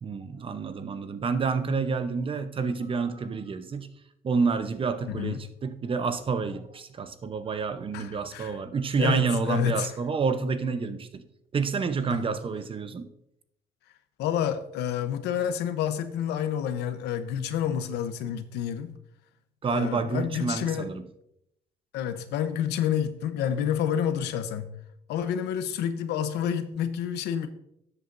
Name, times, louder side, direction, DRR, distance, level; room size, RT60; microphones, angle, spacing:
voice 1, 0.0-3.9 4.2-11.2 11.5-13.1 19.6-21.1, right 5 dB, 30° right, 11 dB, 0.8 m, -29 dB
voice 2, 5.0-5.4 7.9-8.5 9.0-9.9 12.1-12.2 14.2-18.9 19.7-20.9 21.9-24.7 25.1-27.5, left 9 dB, 85° left, 10 dB, 0.8 m, -29 dB
12.5 x 8.0 x 2.6 m, 0.78 s
cardioid pair, 110°, 17 cm